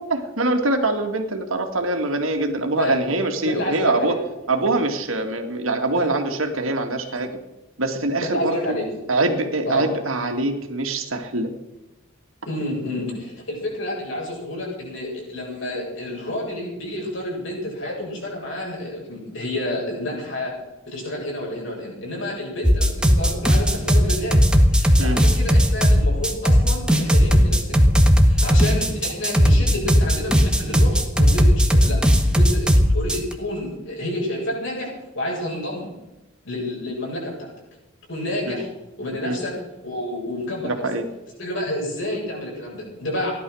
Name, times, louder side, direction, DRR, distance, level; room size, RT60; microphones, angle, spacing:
voice 1, 0.0-4.1 4.5-7.3 7.8-8.5 9.1-11.5 25.0-25.2 38.5-38.6 39.2-39.4 40.6-41.0, right 2 dB, 85° right, 4 dB, 2.3 m, -23 dB
voice 2, 3.4-4.2 6.0-6.1 8.2-8.9 9.6-9.9 12.4-20.5 20.9-27.8 28.3-35.9 36.4-37.4 38.1-38.7 39.0-39.5 39.8-40.8 41.4-43.3, left 1 dB, 65° left, -2 dB, 7.8 m, -29 dB
sound 1, 22.6-33.3, equal, 5° right, 1.6 m, -16 dB
16.5 x 11.5 x 6.4 m, 1.0 s
head